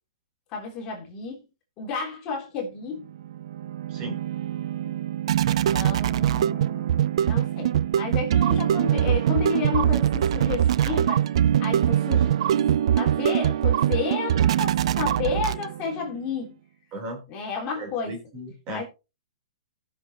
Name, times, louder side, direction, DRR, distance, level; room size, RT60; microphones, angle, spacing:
voice 1, 0.5-1.4 1.8-3.1 4.8-4.9 5.4-6.9 7.2-11.3 11.6-16.6 17.3-18.2 18.7-18.8, left 5 dB, 25° left, 3.3 m, -32 dB
sound 1, 3.2-16.0, right 10 dB, 55° right, 0.4 m, -23 dB
voice 2, 17.8-18.8, right 1 dB, 25° right, 3.8 m, -36 dB
18.5 x 6.6 x 2.9 m
hypercardioid pair, 160°, 4 cm